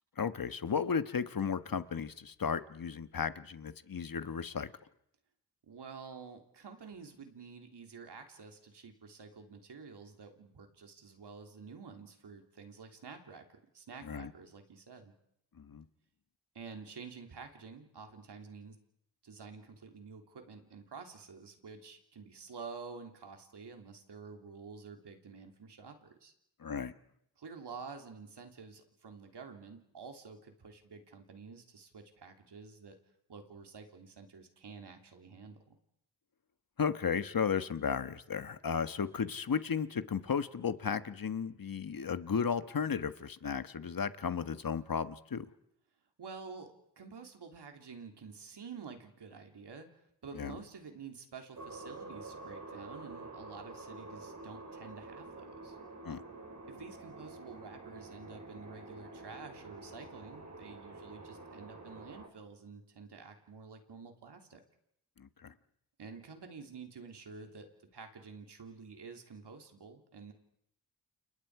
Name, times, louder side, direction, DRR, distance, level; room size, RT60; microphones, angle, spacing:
voice 1, 0.2-4.7 14.0-14.3 15.6-15.8 26.6-26.9 36.8-45.5 50.3-50.6 56.0-56.2 65.2-65.5, left 6 dB, 55° left, 11 dB, 1.4 m, -34 dB
voice 2, 5.6-13.4 13.7-15.1 16.5-18.8 19.2-26.3 27.4-33.0 33.3-35.7 46.2-55.8 56.6-64.6 66.0-67.7 67.9-70.3, right 5 dB, 80° right, 4 dB, 3.3 m, -49 dB
sound 1, 51.6-62.3, right 2 dB, 45° right, 4.5 m, -48 dB
29.5 x 29.5 x 4.9 m, 0.75 s
cardioid pair, 70°, 40 cm